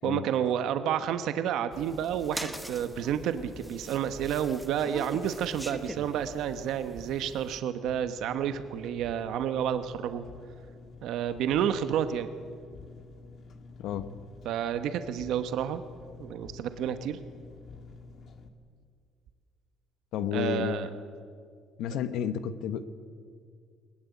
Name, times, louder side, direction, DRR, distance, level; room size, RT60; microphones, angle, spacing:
voice 1, 0.0-10.2 11.0-12.3 14.4-15.8 16.2-17.2 20.3-20.9, right 9 dB, 70° right, 10 dB, 1.0 m, -30 dB
sound 1, 1.7-7.6, right 1 dB, 5° right, 1.1 m, -42 dB
Engine, 7.9-18.5, left 4 dB, 45° left, 1.7 m, -49 dB
voice 2, 20.1-21.0 21.8-22.8, left 9 dB, 75° left, 11 dB, 1.1 m, -31 dB
21.5 x 20.0 x 8.4 m, 2.1 s
cardioid pair, 160°, 0 cm